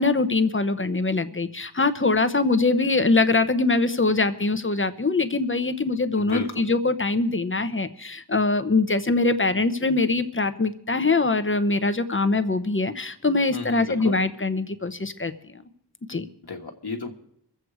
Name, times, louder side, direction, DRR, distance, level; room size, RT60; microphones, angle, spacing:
voice 1, 0.0-15.3 16.1-16.2, left 3 dB, 30° left, 11 dB, 0.9 m, -23 dB
voice 2, 6.1-6.6 13.5-14.2 16.4-17.1, left 3 dB, 65° left, 1 dB, 1.4 m, -33 dB
24.0 x 8.0 x 4.8 m, 0.67 s
wide cardioid pair, 60°, 41 cm